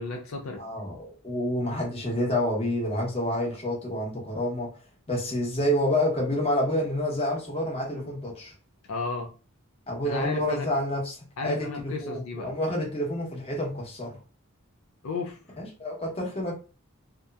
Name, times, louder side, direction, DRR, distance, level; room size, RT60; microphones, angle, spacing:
voice 1, 0.0-0.6 8.9-9.3 10.0-10.7 11.4-12.5 15.0-15.4, left 3 dB, 70° left, 0.4 m, -33 dB
voice 2, 0.6-4.7 5.1-8.5 9.9-14.2 15.6-16.5, left 1 dB, 30° left, 0.9 m, -28 dB
2.8 x 2.1 x 2.3 m
head